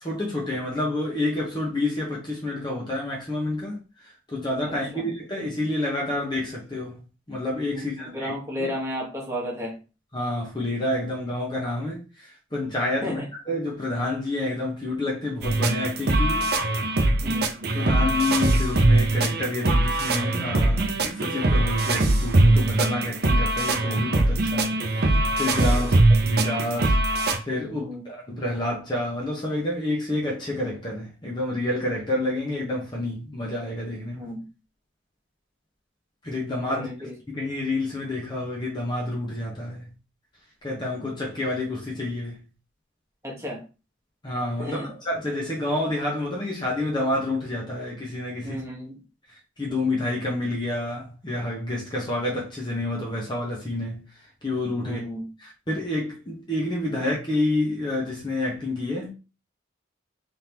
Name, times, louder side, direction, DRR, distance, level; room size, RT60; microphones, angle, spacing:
voice 1, 0.0-7.0 7.3-8.3 8.6-8.7 10.1-13.2 13.5-16.5 17.3-17.4 17.7-25.9 26.2-27.0 27.4-34.3 36.2-36.9 37.3-39.8 40.6-42.4 44.2-48.6 49.6-54.0 54.4-55.0 55.4-59.1, left 1 dB, 25° left, 1.0 m, -29 dB
voice 2, 4.7-5.1 7.7-9.8 13.0-13.3 17.2-17.5 25.8-25.9 27.7-28.1 34.2-34.4 36.7-37.1 43.2-43.6 44.6-44.9 48.4-49.0 54.8-55.3, left 1 dB, 15° right, 1.4 m, -33 dB
sound 1, 15.4-27.4, right 2 dB, 50° right, 0.7 m, -21 dB
3.8 x 3.4 x 2.9 m
head